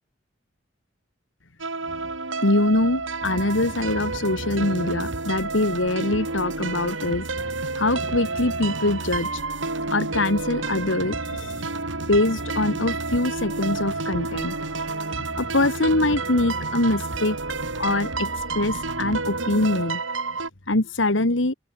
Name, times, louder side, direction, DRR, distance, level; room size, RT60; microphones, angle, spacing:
sound 1, 1.6-20.5, right 3 dB, 90° right, 6.9 m, -31 dB
voice 1, 2.4-7.3 7.7-9.4 9.9-11.7 12.1-14.6 15.1-17.4 17.8-20.0 20.7-21.5, left 2 dB, 75° left, 2.2 m, -23 dB
sound 2, 3.2-19.8, right 2 dB, 65° right, 1.8 m, -36 dB
open air
head